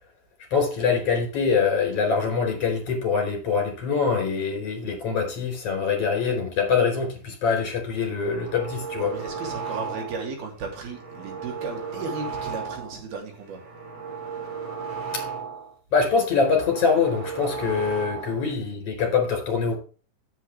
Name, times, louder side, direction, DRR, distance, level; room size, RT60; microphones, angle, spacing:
voice 1, 0.5-9.1 15.1-15.2 15.9-19.8, left 5 dB, 40° left, 5.1 m, -24 dB
sound 1, 7.9-10.3 10.7-13.0 13.4-15.7 16.1-18.5, right 6 dB, 55° right, 5.1 m, -35 dB
voice 2, 9.0-13.6 18.2-18.3, right 4 dB, 80° right, 4.9 m, -35 dB
9.7 x 9.1 x 3.5 m
omnidirectional pair, 4.3 m